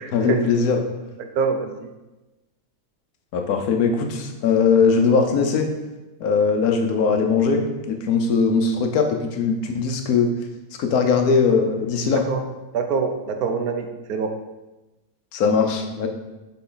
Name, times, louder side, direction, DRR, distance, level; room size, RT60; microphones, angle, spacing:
voice 1, 0.1-0.8 3.3-5.7 6.2-10.3 10.8-12.2 15.3-16.1, left 5 dB, 75° left, 4 dB, 1.2 m, -20 dB
voice 2, 1.4-1.7 12.1-12.4 12.7-14.3, right 5 dB, 75° right, 6 dB, 1.2 m, -24 dB
6.8 x 4.3 x 3.8 m, 1.1 s
omnidirectional pair, 1.6 m